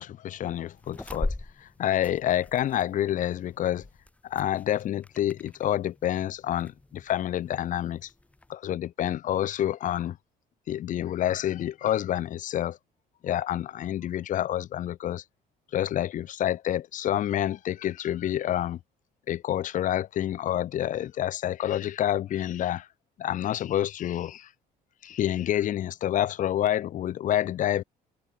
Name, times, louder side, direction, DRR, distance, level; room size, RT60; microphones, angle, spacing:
voice 1, 0.0-1.3 1.6-3.8 4.3-8.1 8.5-10.2 10.7-12.8 13.2-15.2 15.7-18.8 19.3-22.9 23.2-24.5 25.0-27.8, left 11 dB, 50° left, 0.5 m, -28 dB
sound 1, 0.7-8.5, left 2 dB, 10° left, 0.6 m, -41 dB
cardioid pair, 110°, 17 cm